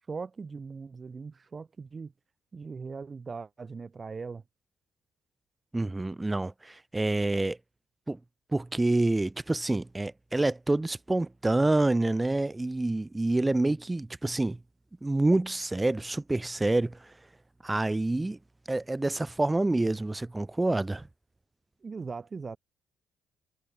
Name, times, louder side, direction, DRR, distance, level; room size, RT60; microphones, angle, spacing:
voice 1, 0.0-2.1 2.5-4.4 21.8-22.6, right 4 dB, 35° right, 0.9 m, -40 dB
voice 2, 5.7-7.6 8.1-8.2 8.5-14.6 15.0-17.2 17.6-18.4 18.7-21.1, right 2 dB, 15° right, 1.1 m, -27 dB
cardioid pair, 90°, 0 cm